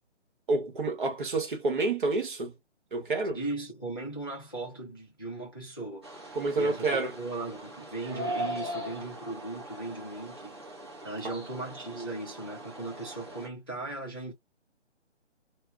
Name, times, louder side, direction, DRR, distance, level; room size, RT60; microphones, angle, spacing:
voice 1, 0.5-2.6 2.9-3.4 6.3-7.1 11.2-11.3, right 3 dB, 45° right, 1.0 m, -29 dB
voice 2, 3.3-10.6 11.0-14.3, right 2 dB, 20° left, 0.4 m, -38 dB
sound 1, 6.0-13.5, right 1 dB, 25° right, 0.6 m, -40 dB
2.1 x 2.1 x 3.5 m
hypercardioid pair, 170°, 35 cm